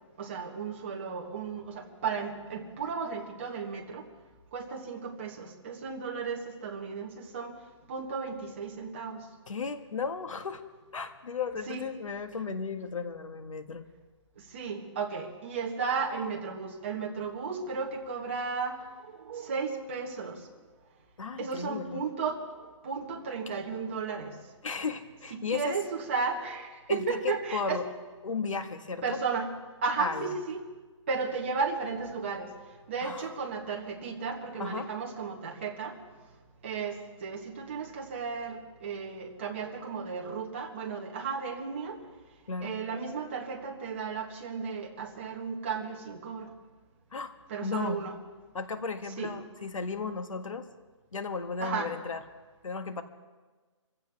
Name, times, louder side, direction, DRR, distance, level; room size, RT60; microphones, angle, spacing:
voice 1, 0.2-4.1 4.5-7.5 7.9-9.3 11.7-11.8 14.5-20.4 21.4-22.4 22.8-24.4 25.3-27.8 29.0-29.5 29.8-30.6 31.1-32.5 32.9-36.0 36.6-42.0 42.6-46.5 47.5-48.1 49.2-49.3 51.6-51.9, right 5 dB, 20° right, 0 dB, 1.4 m, -34 dB
voice 2, 9.5-10.6 10.9-13.9 21.2-22.0 24.6-25.8 26.9-27.9 28.2-29.2 30.0-30.3 33.0-33.3 34.6-34.9 42.5-42.8 47.1-47.3 47.6-48.1 48.5-50.7 51.1-52.2 52.6-53.0, left 5 dB, 80° left, 7 dB, 1.8 m, -35 dB
26.0 x 16.0 x 3.5 m, 1.3 s
hypercardioid pair, 180°, 16 cm